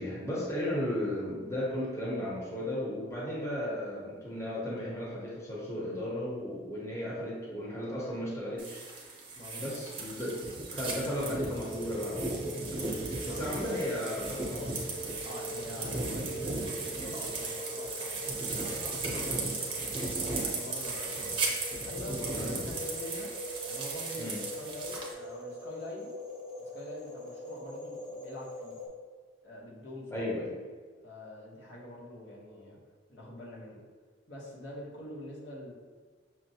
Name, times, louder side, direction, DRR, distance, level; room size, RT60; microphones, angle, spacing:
voice 1, 0.0-9.0 9.6-10.4 10.7-12.9 13.2-14.7 21.1-21.4 22.3-22.7 24.2-24.4 30.1-30.6, left 1 dB, 15° left, -6 dB, 0.8 m, -35 dB
sound 1, 8.6-25.1, right 3 dB, 30° right, 0.7 m, -36 dB
voice 2, 9.3-10.5 13.2-13.9 15.2-21.4 21.7-23.3 23.6-26.1 26.6-28.8 29.4-30.3 31.0-32.8 33.1-33.8 34.3-35.7, left 1 dB, 75° left, -4 dB, 1.0 m, -45 dB
sound 2, 11.7-28.9, equal, 50° left, 1.0 m, -42 dB
6.0 x 2.1 x 2.7 m, 1.5 s
head